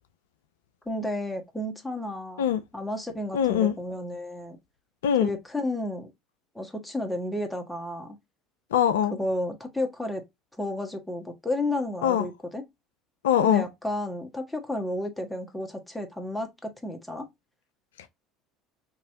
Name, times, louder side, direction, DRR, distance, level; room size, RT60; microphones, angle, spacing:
voice 1, 0.8-2.5 2.7-4.6 5.2-6.1 6.5-8.2 9.1-10.2 10.6-12.6 13.4-17.3, left 1 dB, 5° left, 1.3 m, -32 dB
voice 2, 3.3-3.7 5.0-5.3 8.7-9.2 12.0-12.3 13.2-13.6 18.0-18.1, left 9 dB, 75° left, 0.3 m, -22 dB
3.7 x 2.9 x 2.7 m
figure-of-eight pair, 65°, 0 cm